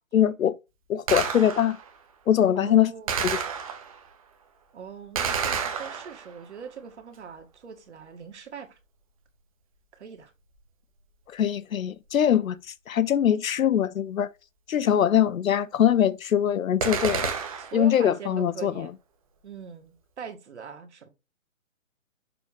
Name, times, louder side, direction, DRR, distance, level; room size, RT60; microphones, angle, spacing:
voice 1, 0.1-0.5 0.9-1.8 2.3-2.9 3.2-3.4 11.3-14.3 14.7-17.3 17.7-18.9, left 9 dB, 80° left, 0.6 m, -22 dB
Gunshot gunfire, 1.1-1.9 3.1-4.1 5.1-6.4 16.8-17.9, right 6 dB, 25° right, 0.9 m, -29 dB
voice 2, 2.6-3.1 4.7-8.8 9.9-10.3 17.6-18.9 19.4-21.1, right 7 dB, 55° right, 1.6 m, -41 dB
6.8 x 3.4 x 4.8 m
hypercardioid pair, 155°, 40 cm